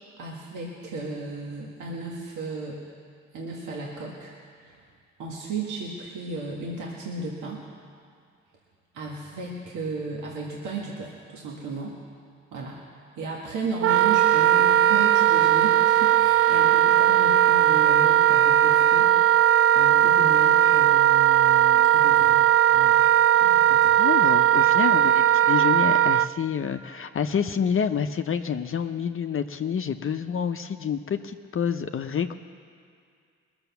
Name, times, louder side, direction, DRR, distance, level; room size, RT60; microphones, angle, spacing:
voice 1, 0.2-2.8 3.3-4.3 4.6-4.8 5.2-7.6 8.9-12.0 12.5-12.8 13.2-23.1 23.4-24.0, right 3 dB, 80° right, -3 dB, 1.8 m, -35 dB
Wind instrument woodwind instrument, 13.8-26.3, right 11 dB, 50° right, 0.4 m, -18 dB
voice 2, 24.0-32.3, left 7 dB, 45° left, 7 dB, 0.7 m, -28 dB
21.0 x 7.0 x 7.0 m, 2.2 s
supercardioid pair, 60°, 30 cm